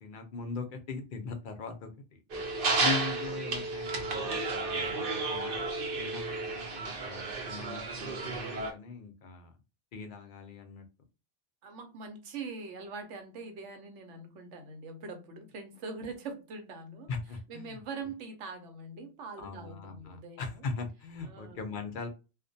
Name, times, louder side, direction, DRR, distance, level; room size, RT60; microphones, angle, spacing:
voice 1, 0.0-2.2 2.8-5.6 6.0-9.5 9.9-10.8 17.1-18.1 19.4-22.1, left 4 dB, 55° left, 0.6 m, -40 dB
sound 1, 2.3-8.7, right 3 dB, 60° right, 0.7 m, -32 dB
voice 2, 11.6-17.1 17.5-20.7 21.3-21.6, right 4 dB, 80° right, 1.0 m, -43 dB
2.4 x 2.1 x 2.5 m
omnidirectional pair, 1.2 m